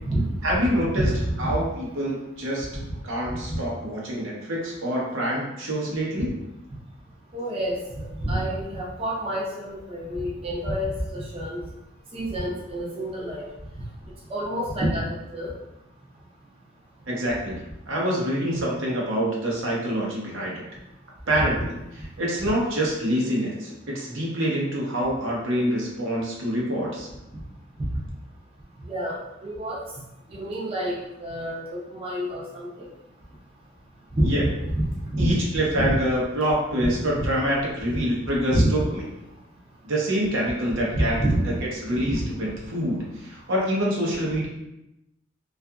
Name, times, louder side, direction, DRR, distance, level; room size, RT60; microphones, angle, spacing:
voice 1, 0.4-1.1 1.4-2.7 3.0-6.4 17.1-17.6 17.9-20.6 21.3-27.1 34.2-34.5 35.2-39.0 39.8-41.2 41.5-44.5, equal, 80° right, -4 dB, 0.8 m, -26 dB
voice 2, 1.0-1.3 2.7-2.8 3.5-3.6 7.3-11.6 12.1-13.4 14.3-15.1 15.3-15.5 21.3-21.4 28.9-29.2 29.4-29.8 30.3-31.6 31.9-32.7 34.1-34.3 35.1-35.3 35.9-36.0 37.2-37.3 38.5-38.7 40.9-41.5 42.0-42.2, right 1 dB, 30° right, -6 dB, 0.5 m, -27 dB
2.7 x 2.4 x 2.3 m, 0.89 s
head